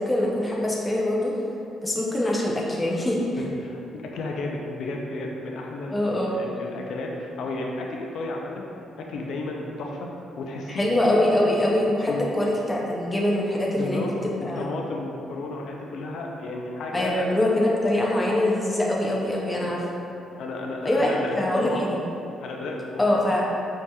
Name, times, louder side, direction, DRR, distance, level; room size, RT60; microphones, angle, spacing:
voice 1, 0.0-1.3 1.8-3.2 5.9-6.4 10.7-14.1 14.5-14.6 16.9-19.9 20.8-22.0 23.0-23.4, left 1 dB, 15° left, -3 dB, 0.5 m, -23 dB
voice 2, 3.4-8.7 9.0-10.1 10.4-10.9 12.1-12.2 13.7-14.1 14.4-17.3 19.6-19.8 20.4-21.8 22.4-23.1, left 2 dB, 75° left, 0 dB, 0.4 m, -33 dB
4.5 x 2.8 x 2.2 m, 2.7 s
cardioid pair, 90°, 0 cm